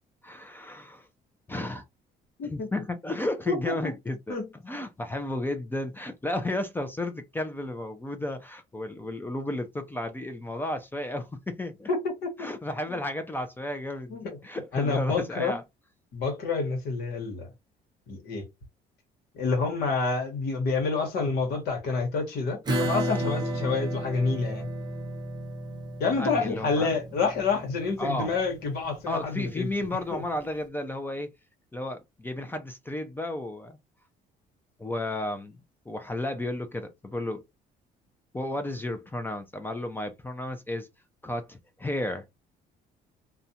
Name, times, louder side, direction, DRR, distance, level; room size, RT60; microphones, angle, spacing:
voice 1, 0.2-1.1 1.5-1.8 2.4-4.4 4.6-11.9 12.4-15.6 26.2-26.9 28.0-28.3 29.1-31.3 31.7-33.8 34.8-35.6 35.9-37.4 38.3-40.9 41.2-42.2, left 1 dB, 10° left, 0.4 m, -33 dB
voice 2, 3.5-3.9 4.3-4.5 11.9-12.5 12.9-13.0 14.1-14.4 14.7-15.6 16.1-17.5 18.1-18.4 19.3-24.7 26.0-30.2, left 4 dB, 70° left, 1.1 m, -28 dB
Acoustic guitar / Strum, 22.7-29.9, right 1 dB, 25° right, 0.7 m, -33 dB
2.4 x 2.1 x 2.7 m
cardioid pair, 110°, 17 cm